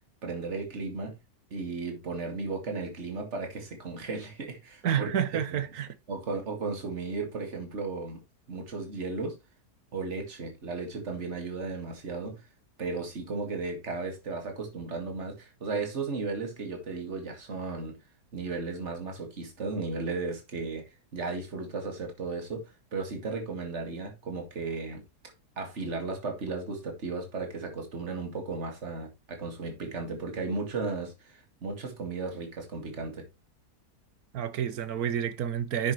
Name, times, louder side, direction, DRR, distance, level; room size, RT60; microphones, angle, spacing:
voice 1, 0.2-1.2 1.5-5.1 5.5-5.6 6.1-8.2 8.5-9.4 9.9-12.4 12.8-18.0 18.3-20.8 21.1-25.0 25.6-33.3, right 4 dB, 45° right, 2.4 m, -35 dB
voice 2, 4.8-6.0 34.3-35.9, right 9 dB, 70° right, 1.4 m, -29 dB
10.0 x 6.5 x 3.2 m
omnidirectional pair, 1.7 m